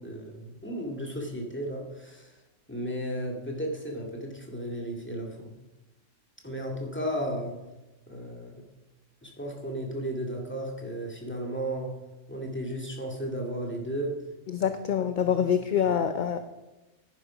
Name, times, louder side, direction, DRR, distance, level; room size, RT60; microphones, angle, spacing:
voice 1, 0.0-2.3 2.7-5.5 6.4-7.6 8.1-8.6 9.2-11.9 12.3-14.2 14.6-14.7 15.2-15.3 15.9-16.0, right 1 dB, 10° left, 0 dB, 2.1 m, -34 dB
voice 2, 14.5-16.4, left 8 dB, 50° left, 9 dB, 0.6 m, -26 dB
10.5 x 10.0 x 4.9 m, 1.0 s
omnidirectional pair, 1.3 m